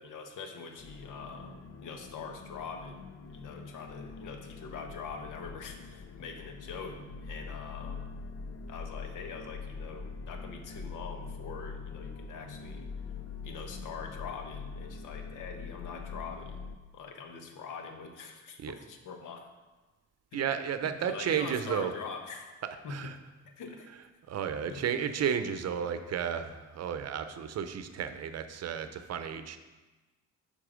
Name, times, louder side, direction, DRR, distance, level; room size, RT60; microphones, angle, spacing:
voice 1, 0.0-3.0 3.3-8.1 8.7-12.9 13.4-16.6 16.9-19.5 20.3-20.4 20.8-22.5 22.8-23.1 23.4-23.9 24.7-24.8, left 5 dB, 90° left, 5 dB, 1.1 m, -43 dB
sound 1, 0.8-16.8, left 5 dB, 50° left, 0.6 m, -43 dB
voice 2, 20.3-21.9 22.6-23.2 24.3-29.6, right 8 dB, 55° right, 10 dB, 0.7 m, -33 dB
8.8 x 5.3 x 5.0 m, 1.2 s
cardioid pair, 90°, 30 cm